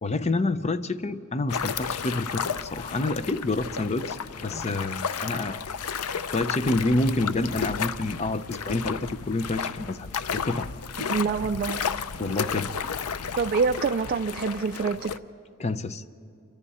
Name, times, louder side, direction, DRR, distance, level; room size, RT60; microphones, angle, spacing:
voice 1, 0.0-4.2 4.4-5.6 6.3-10.1 10.3-10.7 12.2-12.7 15.6-16.0, left 2 dB, 30° left, 13 dB, 0.6 m, -28 dB
sound 1, 1.5-15.2, left 6 dB, 85° left, 0.6 m, -33 dB
voice 2, 11.0-11.8 13.4-15.1, right 5 dB, 40° right, 8 dB, 0.4 m, -26 dB
28.0 x 24.0 x 4.2 m, 2.8 s
head